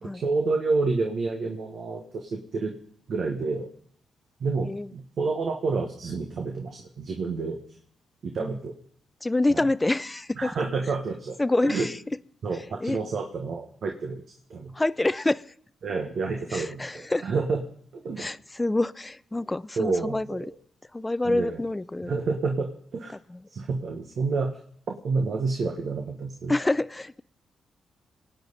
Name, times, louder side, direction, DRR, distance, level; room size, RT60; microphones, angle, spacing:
voice 1, 0.0-2.7 3.1-3.7 4.4-7.6 8.2-8.7 9.5-9.6 10.4-11.4 11.7-11.9 12.4-14.2 14.5-14.7 15.8-17.6 17.9-18.3 19.8-20.5 21.2-21.6 22.1-23.1 23.5-24.5 24.9-26.5, right 4 dB, 65° right, 2 dB, 1.5 m, -29 dB
voice 2, 9.2-10.6 11.4-12.0 12.8-13.0 14.7-15.5 16.5-17.3 18.2-20.5 20.9-22.1 23.3-23.5 26.5-27.2, left 2 dB, 20° left, 18 dB, 0.5 m, -27 dB
27.0 x 9.0 x 4.1 m, 0.62 s
cardioid pair, 65°, 0 cm